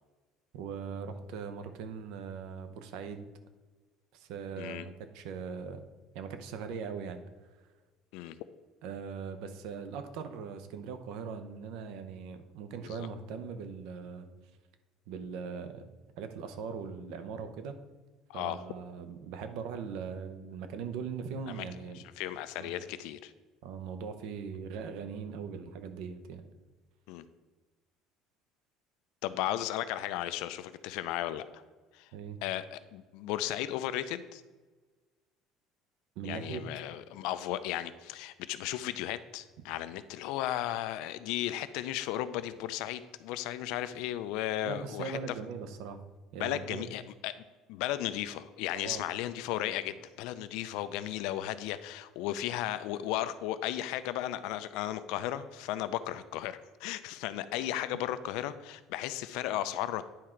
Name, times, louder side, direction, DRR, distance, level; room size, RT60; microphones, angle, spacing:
voice 1, 0.5-3.3 4.1-5.8 6.1-7.2 8.8-14.3 15.1-15.8 16.2-17.8 18.3-22.0 22.6-22.7 23.6-26.4 32.1-32.4 36.2-36.6 44.6-46.0 46.3-46.9 48.7-49.1, right 6 dB, 70° right, 8 dB, 0.7 m, -40 dB
voice 2, 18.3-18.6 21.5-21.7 22.0-23.3 27.1-27.3 29.2-31.6 31.9-32.1 32.4-34.4 36.2-45.2 46.4-47.3 47.7-60.0, left 13 dB, 70° left, 13 dB, 0.4 m, -35 dB
10.0 x 3.7 x 4.4 m, 1.3 s
cardioid pair, 170°, 0 cm